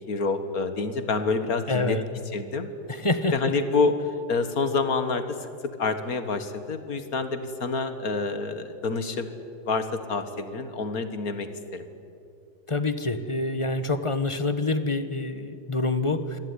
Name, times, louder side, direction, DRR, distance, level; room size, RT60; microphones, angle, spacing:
voice 1, 0.1-2.0 2.3-2.7 3.3-4.0 4.3-5.5 5.8-9.3 9.7-11.9, left 4 dB, 50° left, 10 dB, 2.0 m, -27 dB
voice 2, 1.7-2.0 3.0-3.5 12.7-16.4, left 2 dB, 20° left, 11 dB, 0.9 m, -26 dB
25.5 x 19.0 x 9.9 m, 2.5 s
omnidirectional pair, 2.0 m